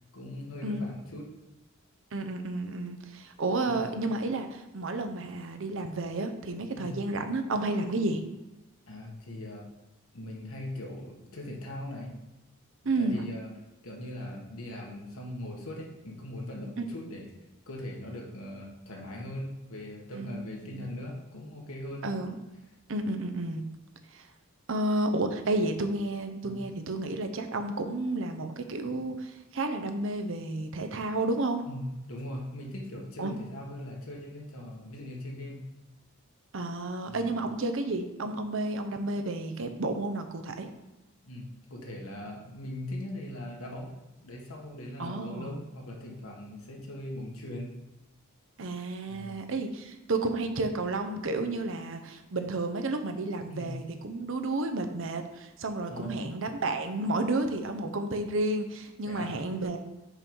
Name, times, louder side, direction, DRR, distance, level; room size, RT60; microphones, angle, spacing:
voice 1, 0.1-1.3 3.7-3.8 6.7-7.0 8.9-9.7 10.1-12.1 13.0-13.5 13.8-17.3 17.7-22.1 26.4-26.6 31.7-35.6 37.0-37.4 41.2-43.9 44.2-47.7 49.1-49.4 53.5-53.8 55.9-56.2 59.1-59.4, left 1 dB, 85° left, -1 dB, 1.6 m, -40 dB
voice 2, 2.1-8.2 12.8-13.3 16.8-16.9 20.1-20.9 22.0-22.3 22.9-23.6 24.1-24.3 24.7-31.6 33.2-33.4 36.5-40.7 45.0-45.6 48.6-59.8, right 2 dB, 65° right, 7 dB, 0.7 m, -31 dB
5.7 x 4.6 x 5.4 m, 1.0 s
head